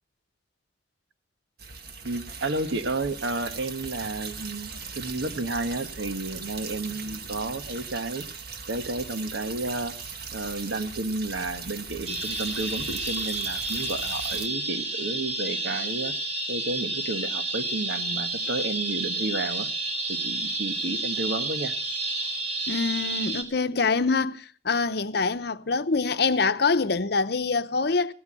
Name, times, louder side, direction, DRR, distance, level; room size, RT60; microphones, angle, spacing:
sound 1, 1.6-14.5, right 5 dB, 55° right, 1.7 m, -39 dB
voice 1, 2.0-8.3 8.7-9.9 10.3-16.1 16.5-19.7 20.1-21.7, right 2 dB, 80° right, 1.4 m, -31 dB
sound 2, 12.1-23.4, right 2 dB, 35° right, 2.9 m, -30 dB
voice 2, 22.7-28.1, left 4 dB, 60° left, 0.8 m, -25 dB
17.0 x 13.0 x 6.3 m
head